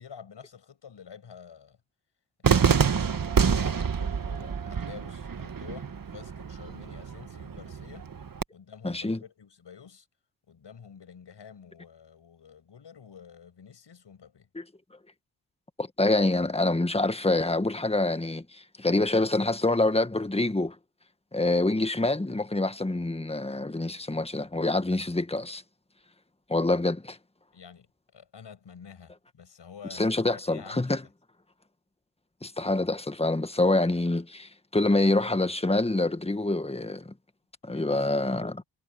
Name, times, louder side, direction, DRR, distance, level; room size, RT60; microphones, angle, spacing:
voice 1, 0.0-1.8 2.4-8.1 8.5-10.1 10.5-14.5 27.5-27.9 28.1-31.0 37.7-38.5, left 7 dB, 60° left, 7.9 m, -49 dB
Cheering / Fireworks, 2.4-8.4, right 6 dB, 45° right, 1.8 m, -27 dB
voice 2, 8.8-9.2 14.6-14.7 15.8-20.8 21.3-25.6 26.5-27.2 29.9-31.0 32.4-37.1 37.6-38.6, left 2 dB, 15° left, 1.7 m, -26 dB
cardioid pair, 55°, 47 cm